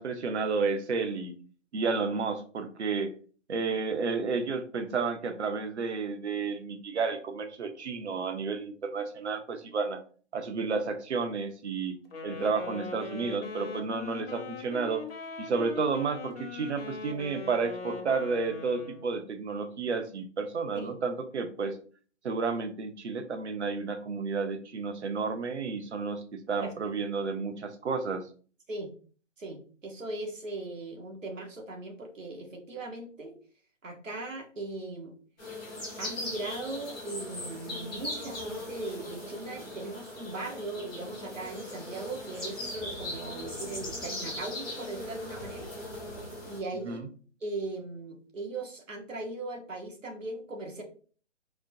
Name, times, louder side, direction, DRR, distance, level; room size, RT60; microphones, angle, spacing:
voice 1, 0.0-1.3 1.7-3.1 3.5-10.0 10.3-12.0 12.2-15.1 15.4-21.8 22.2-28.2 46.8-47.0, right 4 dB, 65° right, 8 dB, 0.7 m, -31 dB
Wind instrument woodwind instrument, 12.0-19.2, left 5 dB, 50° left, 0.8 m, -41 dB
voice 2, 29.4-33.4 33.8-35.1 36.0-45.7 46.4-47.0 47.4-50.8, right 2 dB, 85° right, 1 dB, 1.2 m, -39 dB
sound 1, 35.4-46.6, left 1 dB, 5° left, 0.5 m, -39 dB
4.2 x 2.2 x 2.7 m, 0.42 s
figure-of-eight pair, 150°, 37 cm